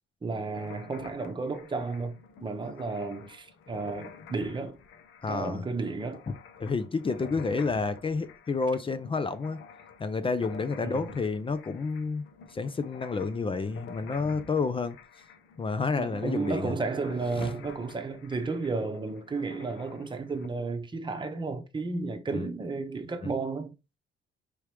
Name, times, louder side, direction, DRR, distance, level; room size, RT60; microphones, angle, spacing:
voice 1, 0.2-4.8 5.3-6.2 10.8-11.0 16.0-23.7, right 3 dB, 25° right, 0.9 m, -33 dB
sound 1, 0.5-20.5, left 5 dB, 80° left, 0.8 m, -50 dB
voice 2, 5.2-5.6 6.6-9.6 10.0-12.2 12.5-15.0 15.6-16.7 17.4-17.5 22.3-22.5, left 4 dB, 25° left, 0.5 m, -30 dB
4.9 x 3.0 x 3.4 m
cardioid pair, 90°, 20 cm